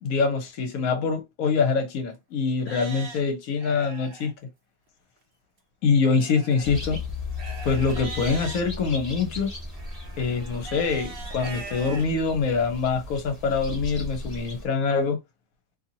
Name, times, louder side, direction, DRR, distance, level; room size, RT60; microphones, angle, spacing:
voice 1, 0.0-4.3 5.8-7.0 7.6-9.5 10.2-15.2, left 5 dB, 65° left, 1.1 m, -24 dB
Livestock farm animals working animals, 1.4-1.5 2.1-2.2 2.6-4.3 6.0-8.6 9.7-12.1 12.6-12.7 13.3-13.4, right 3 dB, 50° right, 0.7 m, -41 dB
sound 1, 6.6-14.7, left 3 dB, 25° left, 1.3 m, -36 dB
2.7 x 2.7 x 2.6 m
omnidirectional pair, 1.7 m